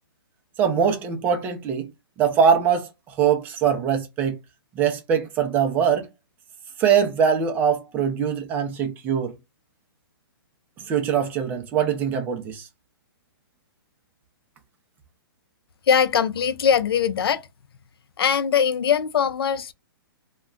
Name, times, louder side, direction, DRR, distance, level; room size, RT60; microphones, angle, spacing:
voice 1, 0.6-1.9 2.2-4.4 4.7-6.1 6.8-9.3 10.8-12.7, right 7 dB, 15° right, 0.4 m, -22 dB
voice 2, 15.9-17.4 18.2-19.7, left 7 dB, 80° left, 0.4 m, -21 dB
2.3 x 2.1 x 3.7 m
hypercardioid pair, 160°, 12 cm